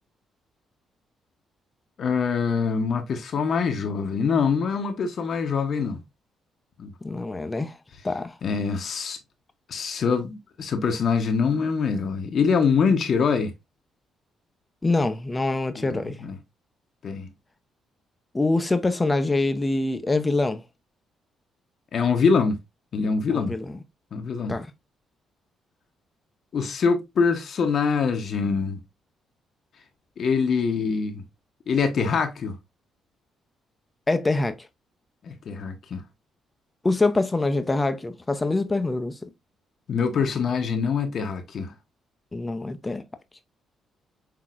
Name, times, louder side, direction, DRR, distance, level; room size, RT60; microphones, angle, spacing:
voice 1, 2.0-6.0 6.8-6.9 8.4-9.2 9.7-13.5 15.8-16.4 17.0-17.3 21.9-22.6 22.9-23.5 24.1-24.6 26.5-28.8 30.2-31.2 31.7-32.6 35.2-36.0 39.9-41.7, left 5 dB, 55° left, 0.9 m, -24 dB
voice 2, 7.0-7.8 8.0-8.3 14.8-16.2 18.3-20.6 23.3-23.8 24.5-24.7 34.1-34.6 36.8-39.3 42.3-43.0, left 2 dB, 20° left, 0.6 m, -25 dB
5.9 x 2.8 x 2.4 m
cardioid pair, 90°, 0 cm